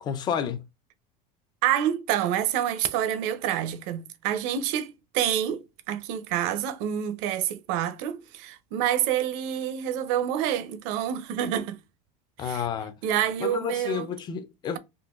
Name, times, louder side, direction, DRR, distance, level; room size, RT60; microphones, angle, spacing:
voice 1, 0.0-0.6 12.4-13.0 13.4-14.8, left 8 dB, 25° left, 0.4 m, -30 dB
voice 2, 1.6-11.8 12.4-12.6 13.0-14.1, right 10 dB, 60° right, 0.6 m, -27 dB
3.8 x 2.6 x 2.4 m
cardioid pair, 165°, 20 cm